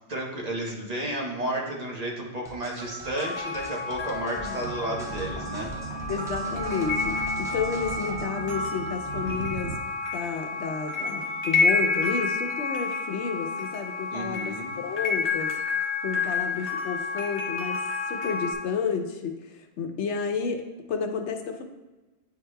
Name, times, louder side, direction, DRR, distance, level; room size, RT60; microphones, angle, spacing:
voice 1, 0.1-5.7 14.1-14.7, right 1 dB, 40° right, -2 dB, 1.1 m, -32 dB
sound 1, 2.4-8.3, equal, 5° right, 0.3 m, -42 dB
sound 2, 2.8-18.5, left 4 dB, 35° left, 1.0 m, -30 dB
voice 2, 4.2-4.6 4.9-5.0 6.1-9.8 10.1-21.6, left 5 dB, 90° left, 5 dB, 1.0 m, -31 dB
sound 3, 4.6-9.8, right 3 dB, 80° right, 0.9 m, -36 dB
9.0 x 4.8 x 2.2 m, 1.1 s
omnidirectional pair, 1.2 m